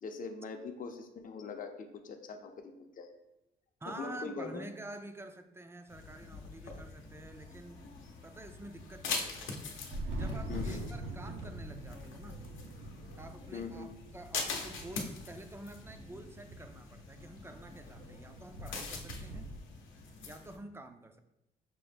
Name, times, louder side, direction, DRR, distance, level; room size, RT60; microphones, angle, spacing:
voice 1, 0.0-3.1 3.9-4.7 10.5-10.8 13.5-13.9, left 4 dB, 45° left, 5 dB, 0.6 m, -42 dB
voice 2, 3.8-7.8 8.2-9.6 9.8-12.4 13.2-19.5 20.2-21.2, right 1 dB, 10° right, 8 dB, 0.3 m, -48 dB
sound 1, 5.9-20.6, left 4 dB, 80° left, 0.7 m, -44 dB
Thunder, 9.7-19.6, right 1 dB, 80° right, 0.7 m, -44 dB
5.9 x 2.1 x 3.3 m, 0.91 s
cardioid pair, 90°, 20 cm